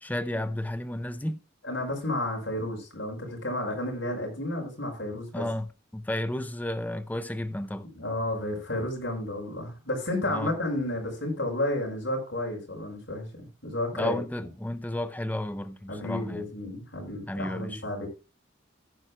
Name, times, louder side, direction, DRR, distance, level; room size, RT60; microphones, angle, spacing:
voice 1, 0.0-1.4 5.3-7.9 10.2-10.5 13.9-16.4 17.3-17.8, left 1 dB, 10° left, 0.5 m, -32 dB
voice 2, 1.6-5.4 7.8-14.2 15.9-18.1, left 1 dB, 70° left, 5.4 m, -32 dB
15.5 x 9.9 x 2.2 m
head